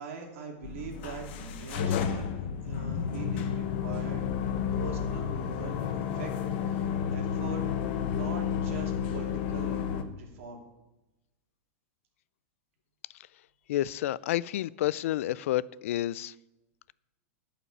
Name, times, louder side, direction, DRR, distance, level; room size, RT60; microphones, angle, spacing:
voice 1, 0.0-2.3 2.6-4.2 4.7-6.3 6.7-7.6 8.1-9.8 10.1-10.6, right 5 dB, 65° right, 0 dB, 2.5 m, -42 dB
sound 1, 0.6-10.0, left 8 dB, 50° left, 1.0 m, -31 dB
voice 2, 13.7-16.3, left 14 dB, 70° left, 22 dB, 0.4 m, -30 dB
11.0 x 5.8 x 8.5 m, 1.0 s
supercardioid pair, 150°, 8 cm